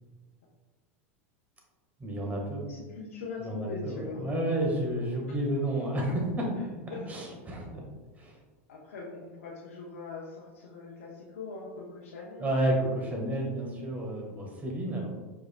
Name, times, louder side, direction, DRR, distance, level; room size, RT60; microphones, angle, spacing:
voice 1, 2.0-2.6 3.4-6.5 6.9-7.8 8.2-8.4 12.4-15.1, right 1 dB, 20° right, -1 dB, 1.4 m, -31 dB
voice 2, 2.6-4.3 5.3-5.4 6.6-6.7 6.9-7.2 8.7-12.6, left 3 dB, 90° left, -4 dB, 0.8 m, -41 dB
4.9 x 4.8 x 2.2 m, 1.3 s
hypercardioid pair, 105°, 7 cm